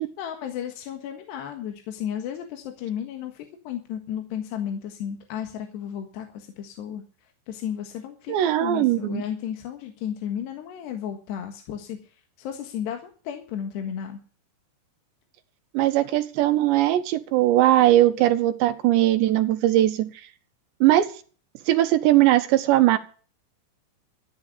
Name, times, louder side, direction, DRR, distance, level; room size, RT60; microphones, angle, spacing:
voice 1, 0.2-14.2, left 9 dB, 70° left, 5 dB, 3.5 m, -34 dB
voice 2, 8.3-9.2 15.7-20.1 20.8-21.1 21.7-23.0, right 14 dB, 75° right, 10 dB, 3.0 m, -20 dB
14.0 x 10.5 x 6.8 m, 0.39 s
omnidirectional pair, 5.4 m